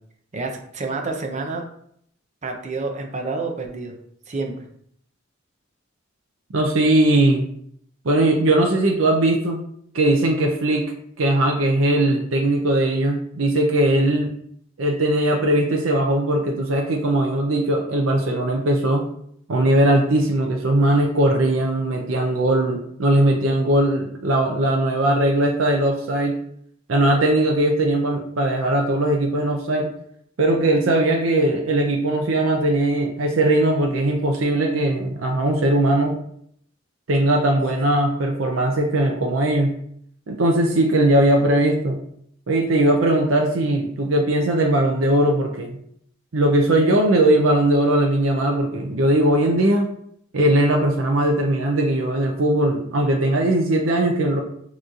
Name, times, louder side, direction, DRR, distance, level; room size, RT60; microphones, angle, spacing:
voice 1, 0.3-1.7 2.4-4.0 4.3-4.6, right 3 dB, 35° right, 3 dB, 0.6 m, -28 dB
voice 2, 6.5-7.4 8.0-9.6 9.9-10.9 11.2-14.3 14.8-19.0 19.5-26.4 26.9-29.9 30.4-36.2 37.1-39.7 40.3-42.0 42.5-45.8 46.3-49.9 50.3-54.4, right 1 dB, 80° right, 1 dB, 0.6 m, -19 dB
6.4 x 3.1 x 2.4 m, 0.68 s
head